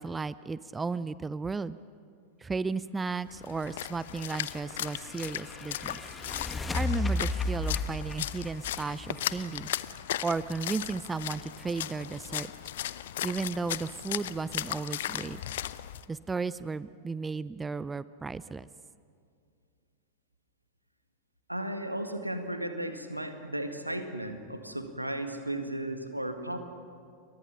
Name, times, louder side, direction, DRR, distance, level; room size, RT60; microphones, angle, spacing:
voice 1, 0.0-1.8 2.4-6.0 6.7-9.7 10.2-12.5 13.2-15.4 16.1-18.7, right 4 dB, 15° right, 17 dB, 0.5 m, -34 dB
Splash splatter, 3.3-16.0, left 12 dB, 55° left, 0.6 m, -37 dB
sound 1, 4.1-9.9, left 2 dB, 15° left, 1.7 m, -34 dB
voice 2, 21.5-26.6, right 1 dB, 85° right, 7 dB, 1.8 m, -35 dB
29.5 x 23.0 x 5.8 m, 2.2 s
figure-of-eight pair, 90°, 0 cm